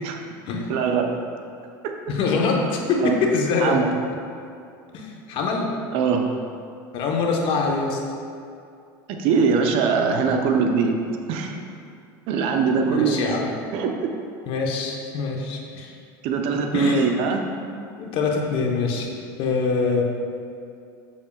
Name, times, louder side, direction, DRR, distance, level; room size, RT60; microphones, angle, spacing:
voice 1, 0.7-1.1 1.8-1.9 3.0-3.1 3.6-3.9 5.9-6.2 9.1-11.0 11.3-11.6 12.3-13.4 13.7-14.1 16.2-17.4, right 5 dB, 60° right, 3 dB, 0.7 m, -22 dB
voice 2, 2.1-3.8 4.9-5.7 6.9-8.0 12.9-13.5 14.5-15.9 16.7-17.1 18.0-19.1 19.4-20.0, left 4 dB, 55° left, 0 dB, 1.0 m, -24 dB
7.3 x 6.6 x 2.4 m, 2.4 s
supercardioid pair, 115°, 11 cm